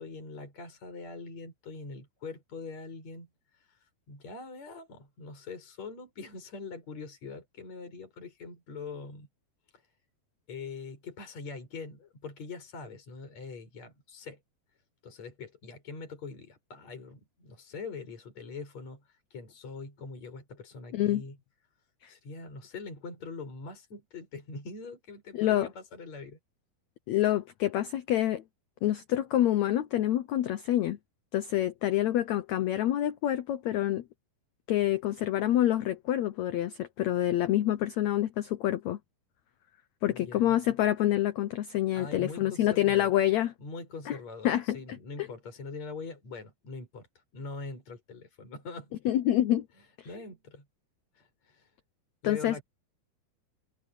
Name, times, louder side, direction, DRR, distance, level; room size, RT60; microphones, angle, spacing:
voice 1, 0.0-3.3 3.6-3.8 4.1-9.3 10.5-14.4 15.0-21.4 22.1-26.4 40.1-40.6 41.9-43.1 43.6-47.1 47.3-48.9 50.1-50.6 51.2-51.7 52.2-52.6, left 4 dB, 45° left, 7.8 m, -43 dB
voice 2, 25.3-25.7 27.1-28.4 28.8-31.0 31.3-34.0 34.7-39.0 40.0-43.5 44.1-44.2 44.4-44.8 45.2-45.3 49.0-49.7 50.0-50.1 52.2-52.6, left 13 dB, 85° left, 1.6 m, -27 dB
omnidirectional pair, 4.3 m